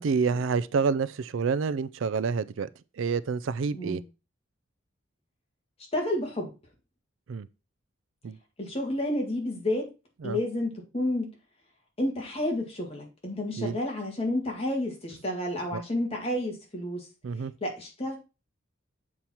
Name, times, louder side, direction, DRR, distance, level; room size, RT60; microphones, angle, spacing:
voice 1, 0.0-2.7 3.0-4.0 7.3-7.5 8.2-8.4 10.2-10.4 13.6-13.8 15.7-15.8 17.2-17.5, right 5 dB, 70° right, 0.4 m, -28 dB
voice 2, 5.9-6.5 8.6-9.9 10.2-11.3 12.0-17.1 17.6-18.2, left 1 dB, 30° left, 1.9 m, -30 dB
7.1 x 4.5 x 4.3 m
head